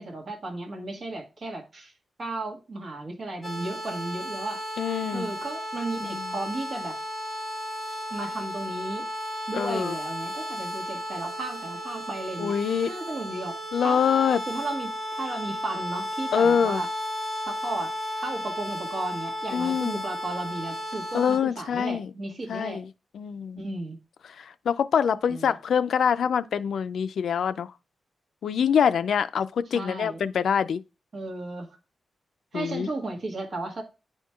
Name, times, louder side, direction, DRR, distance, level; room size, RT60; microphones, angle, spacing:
voice 1, 0.0-1.9 2.2-4.6 5.1-7.0 8.1-9.1 9.5-12.6 12.8-13.6 13.8-14.0 14.5-16.9 17.5-22.8 23.6-24.0 25.3-25.6 29.7-30.2 31.1-31.7 32.5-33.8, right 2 dB, 45° right, 1.5 m, -34 dB
sound 1, 3.4-21.4, equal, 10° left, 2.4 m, -34 dB
voice 2, 4.8-5.3 6.0-6.3 9.5-9.9 12.4-12.9 13.7-14.4 16.3-16.8 19.5-20.0 21.1-22.1 22.5-22.9 23.1-23.6 24.4-27.7 28.4-30.8 32.5-32.9, left 7 dB, 80° left, 0.3 m, -25 dB
10.0 x 4.4 x 2.3 m
wide cardioid pair, 155°, 0 cm